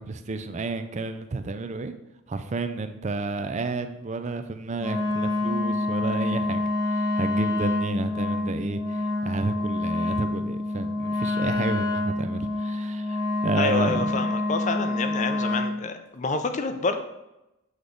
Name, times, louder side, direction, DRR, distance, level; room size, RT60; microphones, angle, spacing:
voice 1, 0.0-1.9 2.3-14.3, right 3 dB, 30° right, 9 dB, 0.4 m, -31 dB
Wind instrument woodwind instrument, 4.8-15.8, left 2 dB, 20° left, 1.1 m, -27 dB
voice 2, 13.6-17.0, left 4 dB, 35° left, 8 dB, 0.5 m, -28 dB
8.0 x 3.4 x 3.8 m, 0.93 s
head